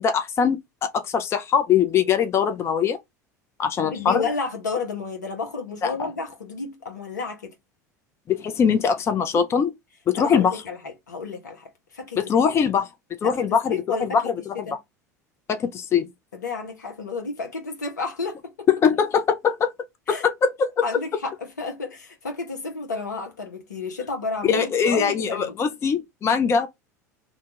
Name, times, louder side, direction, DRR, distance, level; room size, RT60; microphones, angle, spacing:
voice 1, 0.0-3.0 3.6-4.2 5.8-6.1 8.3-9.7 10.1-10.6 12.2-12.9 13.2-14.5 15.5-16.1 18.7-19.7 20.1-20.8 24.4-26.7, left 7 dB, 30° left, 0.5 m, -22 dB
voice 2, 3.8-7.5 10.1-11.6 11.9-12.5 13.2-13.4 13.7-14.3 14.7-14.8 16.3-18.7 20.1-20.2 20.8-25.5, left 4 dB, 80° left, 0.8 m, -31 dB
2.7 x 2.3 x 2.9 m
figure-of-eight pair, 75°, 9 cm